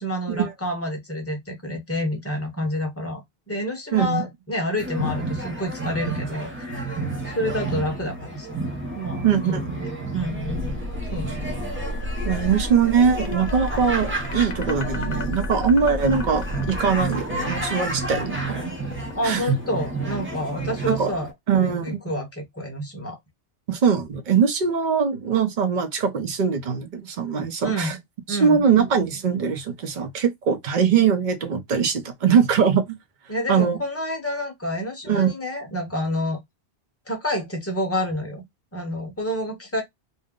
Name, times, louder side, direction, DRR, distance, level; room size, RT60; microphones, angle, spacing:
voice 1, 0.0-8.6 8.9-10.6 11.1-11.5 19.2-21.3 21.6-23.2 27.6-28.0 28.3-28.6 33.3-36.4 37.1-38.4 38.7-39.8, left 1 dB, 15° left, 0.8 m, -29 dB
voice 2, 3.9-4.3 9.2-9.6 12.3-18.7 19.2-19.6 20.9-21.1 21.5-22.0 23.7-28.0 28.3-33.0 33.5-33.8 35.1-35.3, right 6 dB, 50° right, 0.7 m, -22 dB
sound 1, 4.8-21.3, right 2 dB, 15° right, 0.5 m, -31 dB
sound 2, 10.2-19.0, left 1 dB, 85° right, 1.1 m, -33 dB
sound 3, 13.2-20.3, left 5 dB, 55° left, 0.4 m, -39 dB
2.6 x 2.0 x 3.6 m
omnidirectional pair, 1.2 m